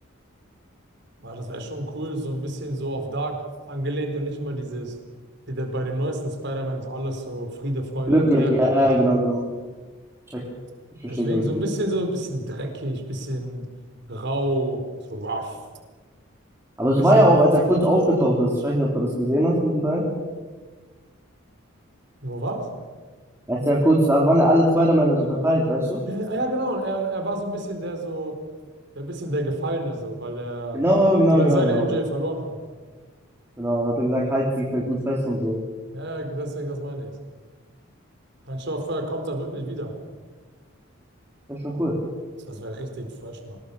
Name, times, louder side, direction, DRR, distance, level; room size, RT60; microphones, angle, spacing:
voice 1, 1.2-3.4 3.7-4.9 5.5-8.9 11.0-13.6 14.1-14.8 15.1-15.6 16.9-17.4 22.2-22.7 26.0-28.4 28.9-30.8 31.3-32.6 35.9-37.1 38.5-39.9 42.4-43.6, right 1 dB, 55° right, 4 dB, 4.7 m, -29 dB
voice 2, 8.1-9.4 10.3-10.4 11.0-11.6 16.8-20.1 23.5-26.0 30.7-31.9 33.6-35.6 41.5-42.0, equal, 10° right, -3 dB, 3.5 m, -20 dB
24.5 x 21.0 x 7.2 m, 1.4 s
head